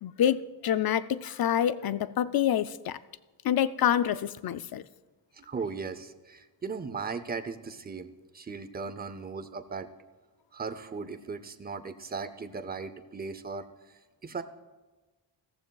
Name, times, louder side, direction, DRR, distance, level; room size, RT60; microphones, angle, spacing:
voice 1, 0.0-3.0 3.4-4.8, left 10 dB, 55° left, 14 dB, 0.5 m, -27 dB
voice 2, 5.3-8.1 8.3-9.9 10.5-13.7 14.2-14.4, right 5 dB, 20° right, 12 dB, 0.6 m, -37 dB
16.0 x 14.5 x 2.3 m, 1.2 s
wide cardioid pair, 125°, 45 cm